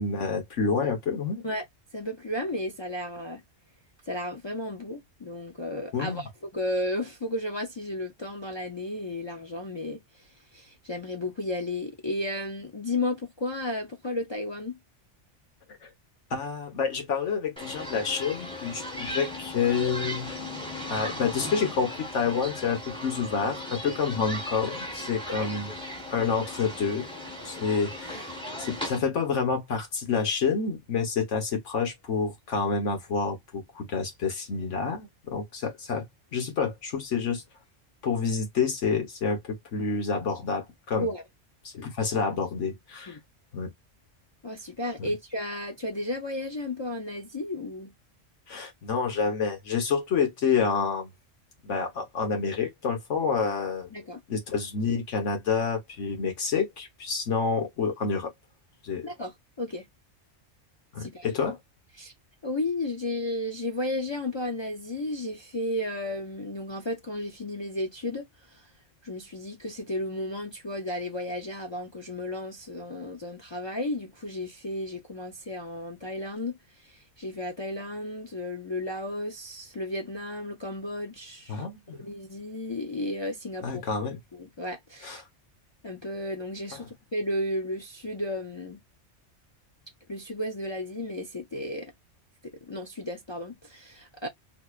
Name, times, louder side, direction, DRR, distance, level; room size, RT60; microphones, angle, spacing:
voice 1, 0.0-1.4 5.9-6.3 16.3-20.3 20.9-25.7 26.1-27.1 27.4-36.0 36.3-37.4 38.0-41.1 41.6-43.2 43.5-43.7 45.0-45.1 48.5-51.1 51.6-53.9 54.3-58.3 58.8-59.1 60.9-61.6 81.5-82.0 83.6-84.2 85.0-85.2, left 5 dB, 80° left, 1.5 m, -28 dB
voice 2, 1.9-3.4 4.1-14.8 25.4-25.5 41.0-41.2 43.1-43.2 44.4-47.9 53.9-54.2 59.0-59.9 61.0-61.3 62.0-62.1 62.4-68.7 69.0-81.6 82.0-83.8 84.3-85.2 85.8-88.8 90.1-91.9 92.4-94.3, left 1 dB, 50° left, 0.3 m, -33 dB
sound 1, 17.6-29.0, left 1 dB, 5° left, 0.9 m, -37 dB
4.1 x 2.8 x 2.4 m
omnidirectional pair, 1.2 m